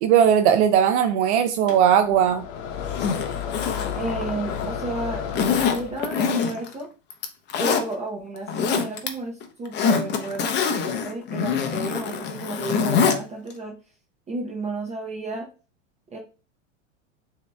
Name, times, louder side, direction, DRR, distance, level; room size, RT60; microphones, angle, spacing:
voice 1, 0.0-2.4, right 8 dB, 65° right, 7 dB, 0.5 m, -18 dB
Bathroom Exhaust Fan, 1.7-6.2, left 8 dB, 55° left, 0.9 m, -32 dB
Zipper (clothing), 2.8-4.8 5.3-6.7 7.1-7.8 8.3-9.1 9.4-13.2 13.5-13.6, left 6 dB, 30° left, 0.7 m, -25 dB
voice 2, 3.9-5.2 5.6-6.9 7.6-13.7 14.3-15.5 16.1-16.2, right 2 dB, 20° right, 0 dB, 0.7 m, -32 dB
6.5 x 2.8 x 2.3 m, 0.35 s
hypercardioid pair, 115°, 38 cm